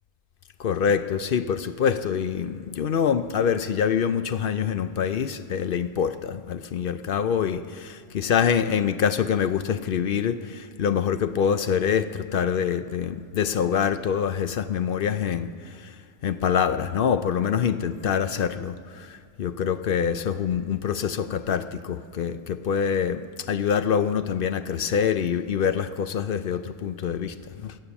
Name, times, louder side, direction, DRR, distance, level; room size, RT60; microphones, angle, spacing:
voice 1, 0.6-15.5 16.2-27.7, left 7 dB, 60° left, 11 dB, 0.7 m, -25 dB
16.5 x 9.0 x 7.1 m, 2.2 s
omnidirectional pair, 1.2 m